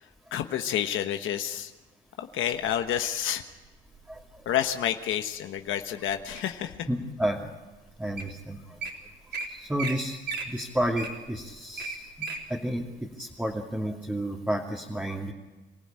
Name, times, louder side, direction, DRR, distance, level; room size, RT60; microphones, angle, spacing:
voice 1, 0.3-1.7 2.2-3.4 4.4-6.9, left 10 dB, 80° left, 7 dB, 1.2 m, -29 dB
Wild animals, 2.5-3.2 3.9-4.2 4.7-5.2 5.7-6.6 7.2-7.3 7.9-8.0 8.2-8.3 8.6-8.9 9.3-9.5 9.8-9.9 10.2-12.4 12.9-13.0, right 4 dB, 55° right, 4.0 m, -35 dB
voice 2, 6.9-7.5 8.0-8.6 9.5-10.2 10.5-12.1 12.5-15.3, right 1 dB, 10° right, -1 dB, 2.6 m, -31 dB
27.5 x 15.5 x 8.9 m, 1.2 s
cardioid pair, 90°, 20 cm